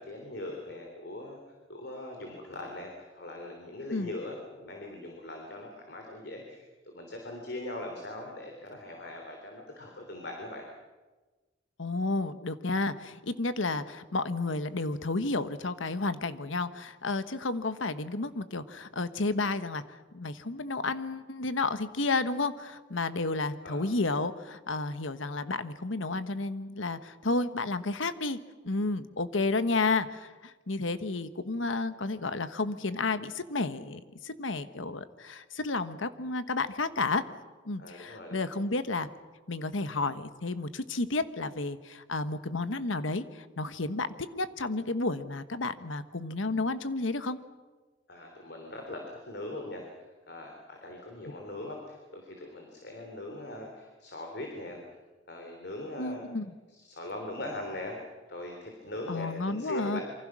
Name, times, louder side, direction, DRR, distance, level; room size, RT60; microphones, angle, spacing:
voice 1, 0.0-1.4 1.7-6.6 6.9-10.7 23.6-23.8 37.8-38.5 48.1-54.8 55.3-56.2 56.7-58.0 58.3-60.0, left 1 dB, 60° left, 2 dB, 3.4 m, -41 dB
voice 2, 11.8-28.4 28.6-37.2 37.7-39.1 39.5-47.4 56.0-56.5 59.1-60.0, left 3 dB, 85° left, 11 dB, 1.2 m, -31 dB
27.5 x 24.5 x 6.3 m, 1.2 s
head